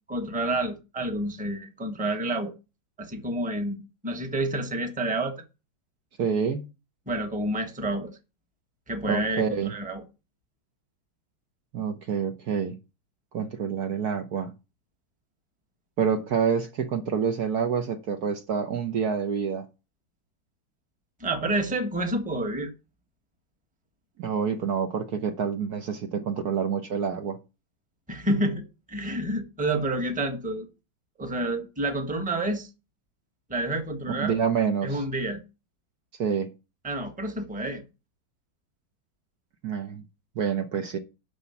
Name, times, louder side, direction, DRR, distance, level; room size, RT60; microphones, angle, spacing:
voice 1, 0.1-2.5 3.0-3.8 4.0-5.3 7.1-8.1 8.9-10.0 21.2-22.7 28.1-30.7 31.2-32.7 33.5-34.4 34.8-35.4 36.8-37.8, right 1 dB, 5° right, 1.2 m, -29 dB
voice 2, 6.2-6.7 9.0-9.7 11.7-12.7 13.3-14.5 16.0-19.6 24.2-27.4 34.1-35.0 36.2-36.5 39.6-40.0 40.4-41.0, right 6 dB, 55° right, 1.3 m, -27 dB
12.0 x 4.5 x 7.0 m
omnidirectional pair, 2.1 m